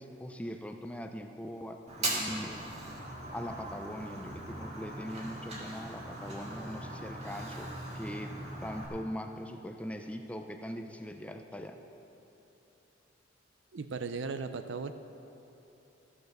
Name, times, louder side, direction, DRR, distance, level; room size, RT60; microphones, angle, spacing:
voice 1, 0.0-2.6 3.3-8.3 8.6-11.8, equal, 5° left, 5 dB, 0.5 m, -41 dB
Fire, 1.9-8.9, right 1 dB, 35° right, 1.8 m, -39 dB
voice 2, 13.7-14.9, right 4 dB, 70° right, 10 dB, 0.5 m, -36 dB
14.5 x 7.0 x 6.5 m, 3.0 s
head